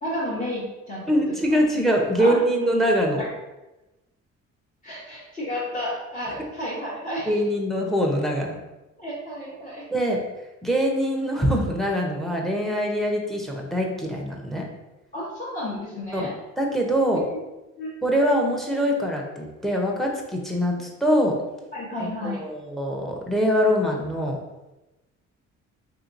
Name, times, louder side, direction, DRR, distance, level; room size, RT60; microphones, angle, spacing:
voice 1, 0.0-1.1 2.2-2.4 3.2-3.3 4.8-7.4 9.0-9.8 15.1-16.3 17.3-17.4 17.8-17.9 21.7-22.4, left 1 dB, 25° left, -8 dB, 0.9 m, -31 dB
voice 2, 1.1-3.2 7.3-8.6 9.9-10.2 10.6-14.6 16.1-16.3 16.6-17.2 18.0-21.4 22.0-24.4, equal, ahead, 0 dB, 0.7 m, -23 dB
3.6 x 2.8 x 2.5 m, 1.0 s
cardioid pair, 90°, 30 cm